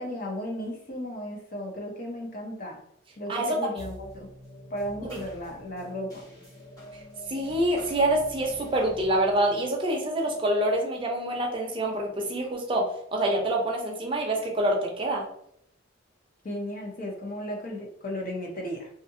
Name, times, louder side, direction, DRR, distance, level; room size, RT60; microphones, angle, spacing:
voice 1, 0.0-2.8 3.2-4.3 4.7-6.2 16.4-18.9, equal, 45° left, 0 dB, 0.7 m, -35 dB
sound 1, 3.8-12.5, equal, 20° left, 1.1 m, -46 dB
voice 2, 7.3-15.3, right 1 dB, 25° right, 0 dB, 0.6 m, -26 dB
2.7 x 2.5 x 2.6 m, 0.72 s
head